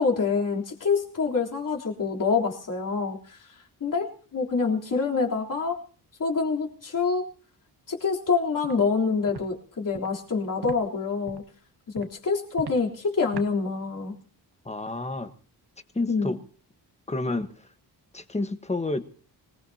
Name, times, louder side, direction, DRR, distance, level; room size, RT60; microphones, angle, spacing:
voice 1, 0.0-3.2 3.8-5.8 6.2-7.2 7.9-11.4 11.9-14.1 16.1-16.3, left 4 dB, 50° left, 3.6 m, -26 dB
Walk footsteps, 8.6-8.8 9.3-9.5 9.9-10.1 10.6-10.8 11.2-11.5 11.9-12.1 12.5-12.8 13.3-13.5, right 6 dB, 65° right, 1.6 m, -38 dB
voice 2, 14.6-15.3 15.9-16.4 17.1-17.7 18.1-19.0, left 2 dB, 15° left, 1.3 m, -29 dB
25.5 x 20.0 x 2.8 m
wide cardioid pair, 130°, 42 cm